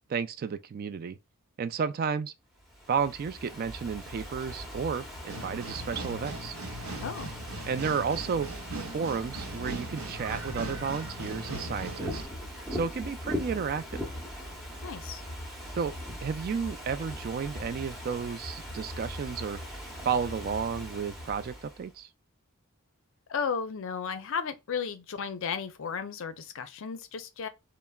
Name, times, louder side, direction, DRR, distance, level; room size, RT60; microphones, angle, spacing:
voice 1, 0.1-1.2 1.6-2.3 2.9-6.5 7.7-8.5 8.9-12.2 12.7-14.0 15.7-15.9 16.2-19.6 20.0-22.1, right 6 dB, 45° right, 0.3 m, -32 dB
Ocean / Fireworks, 2.6-21.9, equal, ahead, 0.7 m, -40 dB
sound 1, 5.3-12.2, right 2 dB, 70° right, 1.2 m, -40 dB
voice 2, 7.0-7.3 14.8-15.2 23.3-27.5, left 6 dB, 65° left, 0.5 m, -34 dB
3.3 x 2.0 x 2.2 m
head